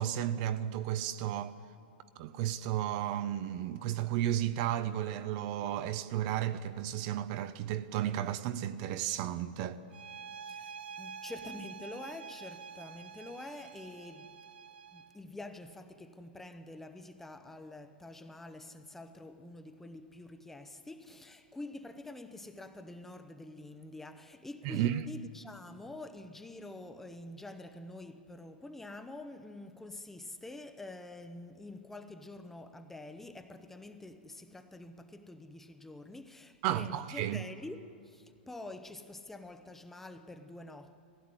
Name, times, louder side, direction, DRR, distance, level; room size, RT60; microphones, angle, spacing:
voice 1, 0.0-1.5 2.2-9.8 24.6-25.0 36.6-37.4, right 12 dB, 45° right, 0.7 m, -33 dB
sound 1, 9.9-15.2, right 6 dB, 90° right, 0.7 m, -47 dB
voice 2, 10.4-14.4 14.9-41.0, left 2 dB, 5° left, 0.8 m, -47 dB
17.5 x 16.0 x 9.7 m
supercardioid pair, 150°, 5 cm